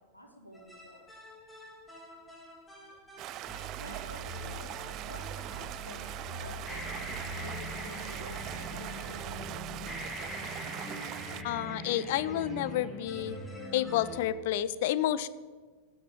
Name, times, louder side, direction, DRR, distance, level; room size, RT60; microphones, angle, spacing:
voice 1, 0.1-1.0 3.8-5.2 5.5-6.0 6.4-9.9, equal, 85° left, 3 dB, 2.0 m, -50 dB
sound 1, 0.5-14.3, right 1 dB, 10° left, 2.5 m, -42 dB
Stream, 3.2-11.4, right 14 dB, 35° right, 0.4 m, -42 dB
voice 2, 11.4-13.4 13.7-15.3, left 12 dB, 50° left, 16 dB, 0.5 m, -30 dB
9.5 x 8.0 x 9.2 m, 1.5 s
figure-of-eight pair, 90°, 0 cm